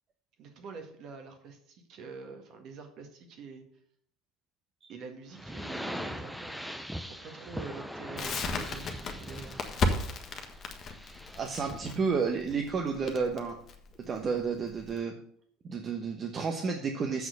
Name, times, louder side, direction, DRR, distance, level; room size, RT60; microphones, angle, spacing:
voice 1, 0.4-3.6 4.9-9.6, right 4 dB, 55° right, 5 dB, 1.8 m, -46 dB
sound 1, 5.3-12.0, equal, ahead, 0.8 m, -41 dB
Crackle, 8.2-15.0, left 3 dB, 40° left, 1.4 m, -34 dB
voice 2, 11.4-13.6 14.0-15.1 15.6-17.3, right 5 dB, 35° right, 3 dB, 1.1 m, -31 dB
7.1 x 6.2 x 6.8 m, 0.65 s
hypercardioid pair, 75°, 0 cm